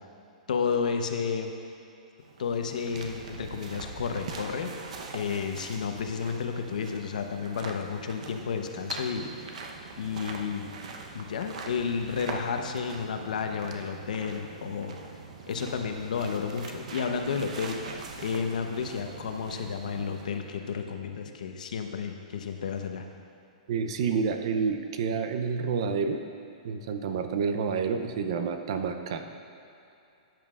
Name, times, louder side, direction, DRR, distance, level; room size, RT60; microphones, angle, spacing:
voice 1, 0.5-1.5 2.4-4.7 5.1-9.5 10.0-10.7 11.1-15.0 15.5-17.8 18.2-23.0, left 6 dB, 75° left, 5 dB, 0.9 m, -31 dB
sound 1, 2.2-20.5, right 3 dB, 60° right, 0.9 m, -42 dB
voice 2, 23.7-26.2 26.6-29.2, right 5 dB, 40° right, 7 dB, 0.5 m, -29 dB
13.5 x 9.3 x 2.5 m, 2.6 s
hypercardioid pair, 175°, 4 cm